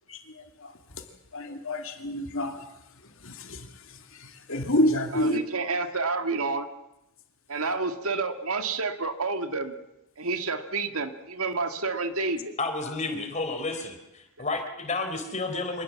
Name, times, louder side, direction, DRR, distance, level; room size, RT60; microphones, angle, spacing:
voice 1, 1.3-2.6 3.2-3.7 4.2-5.4, left 1 dB, 60° left, 5 dB, 2.7 m, -28 dB
voice 2, 5.1-6.7 7.5-9.8 10.2-12.5, right 3 dB, 70° right, 8 dB, 1.9 m, -29 dB
voice 3, 12.6-15.8, left 3 dB, 30° left, 5 dB, 3.9 m, -31 dB
25.5 x 20.5 x 7.5 m, 0.90 s
head